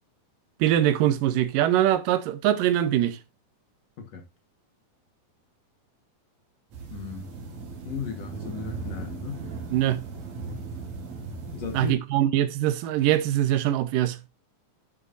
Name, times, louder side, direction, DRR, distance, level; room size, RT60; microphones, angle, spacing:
voice 1, 0.6-3.2 9.7-10.0 11.7-14.2, right 12 dB, 80° right, 2.4 m, -23 dB
sound 1, 6.7-11.9, right 4 dB, 55° right, 3.0 m, -37 dB
voice 2, 6.9-7.3 7.8-9.4 11.5-11.9, left 6 dB, 60° left, 2.1 m, -35 dB
11.0 x 6.3 x 2.5 m
omnidirectional pair, 4.0 m